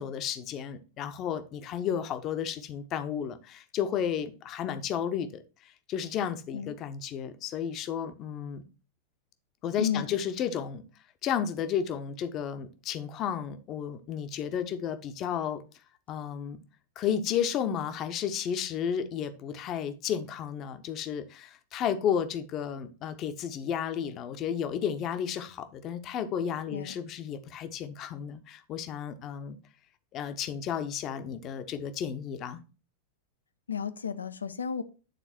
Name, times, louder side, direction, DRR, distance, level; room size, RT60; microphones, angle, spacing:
voice 1, 0.0-5.4 5.9-8.6 9.6-10.8 11.2-15.6 16.1-16.6 17.0-29.6 30.1-32.6, left 8 dB, 35° left, 9 dB, 0.9 m, -32 dB
voice 2, 9.8-10.2 26.7-26.9 33.7-34.8, left 7 dB, 75° left, 12 dB, 0.6 m, -32 dB
9.3 x 4.0 x 4.3 m, 0.34 s
figure-of-eight pair, 90°, 0 cm